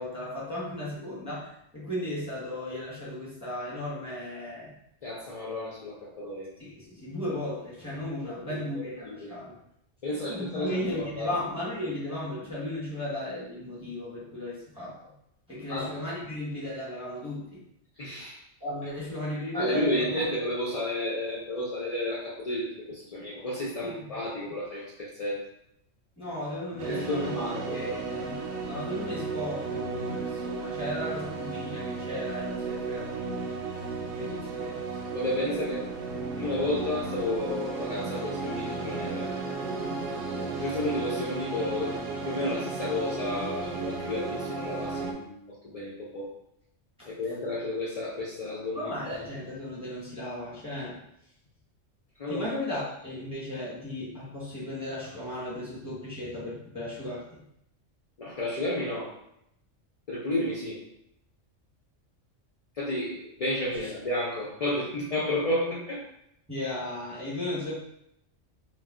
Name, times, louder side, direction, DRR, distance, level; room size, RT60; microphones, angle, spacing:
voice 1, 0.0-4.7 6.6-9.6 10.1-15.1 15.5-17.6 18.6-20.3 23.8-24.1 24.4-24.6 26.2-27.4 27.7-33.5 34.0-34.8 47.0-47.1 48.7-51.0 52.3-57.4 63.8-63.9 66.5-67.8, left 1 dB, 5° right, -8 dB, 0.9 m, -35 dB
voice 2, 5.0-6.5 8.2-9.4 10.0-11.4 14.8-14.9 15.5-15.9 18.0-18.4 19.5-25.4 26.9-28.0 34.7-34.8 35.1-35.9 36.4-39.3 40.5-42.0 42.3-46.3 47.1-49.2 52.2-52.5 58.2-59.1 60.1-60.8 62.8-66.0, left 1 dB, 70° left, -5 dB, 0.3 m, -32 dB
sound 1, 26.8-45.1, right 4 dB, 90° right, 1.0 m, -34 dB
2.3 x 2.2 x 3.5 m, 0.77 s
omnidirectional pair, 1.3 m